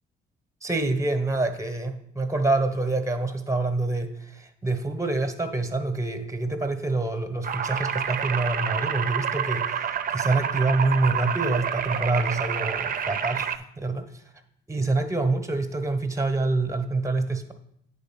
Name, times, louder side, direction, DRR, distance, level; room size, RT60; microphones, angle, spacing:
voice 1, 0.6-14.2 14.7-17.5, right 2 dB, 15° right, 8 dB, 1.0 m, -26 dB
sound 1, 7.4-13.6, right 8 dB, 45° right, 0.6 m, -28 dB
8.7 x 3.8 x 5.8 m, 0.72 s
cardioid pair, 90°, 20 cm